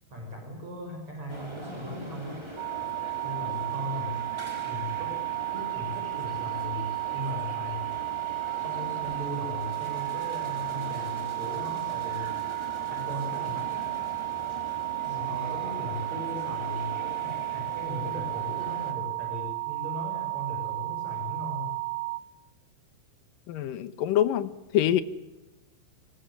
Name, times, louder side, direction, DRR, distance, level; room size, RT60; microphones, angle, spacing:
voice 1, 0.1-2.4 3.2-4.3 4.6-5.1 5.5-7.8 8.6-12.3 12.9-13.9 15.0-16.9 17.2-21.7, left 1 dB, 40° right, 1 dB, 7.4 m, -38 dB
sound 1, 1.3-18.9, right 1 dB, 5° right, 2.8 m, -42 dB
sound 2, 2.6-22.2, right 23 dB, 70° right, 3.3 m, -33 dB
voice 2, 23.5-25.0, left 11 dB, 70° left, 14 dB, 2.3 m, -25 dB
26.0 x 21.5 x 9.9 m, 1.0 s
omnidirectional pair, 5.1 m